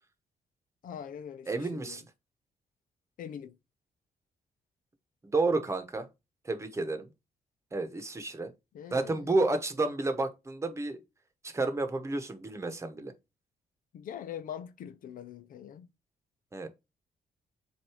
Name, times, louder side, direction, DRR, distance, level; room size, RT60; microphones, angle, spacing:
voice 1, 0.8-2.0 3.2-3.5 8.7-9.3 13.9-15.9, left 9 dB, 70° left, 0.6 m, -42 dB
voice 2, 1.5-2.0 5.2-6.1 6.4-7.1 7.7-8.5 8.9-11.0 11.4-13.1 16.5-16.7, right 2 dB, 20° right, 1.1 m, -30 dB
7.6 x 2.7 x 4.8 m
cardioid pair, 120°, 15 cm